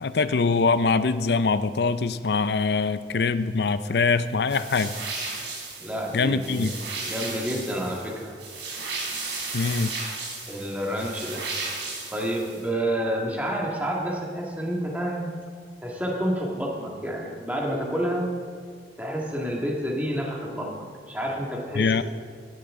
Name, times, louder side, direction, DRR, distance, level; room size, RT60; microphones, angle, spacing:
voice 1, 0.0-4.9 6.1-6.7 9.5-9.9 21.8-22.0, left 4 dB, 65° left, 13 dB, 0.5 m, -23 dB
sound 1, 4.5-12.7, right 3 dB, 90° right, 3.8 m, -35 dB
voice 2, 5.8-6.7 7.0-8.4 10.5-11.5 12.1-15.3 15.8-18.3 19.0-22.0, equal, 10° right, -1 dB, 1.9 m, -29 dB
17.0 x 12.0 x 3.7 m, 2.1 s
head